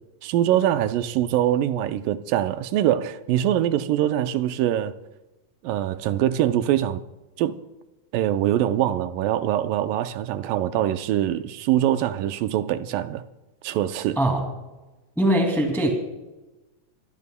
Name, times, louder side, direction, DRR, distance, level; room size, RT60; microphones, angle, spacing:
voice 1, 0.2-4.9 5.6-7.0 7.4-7.6 8.1-13.2 13.6-14.2, right 12 dB, 80° right, 2.2 m, -23 dB
voice 2, 15.2-15.9, right 1 dB, ahead, 1.2 m, -21 dB
24.5 x 16.5 x 2.2 m
omnidirectional pair, 4.2 m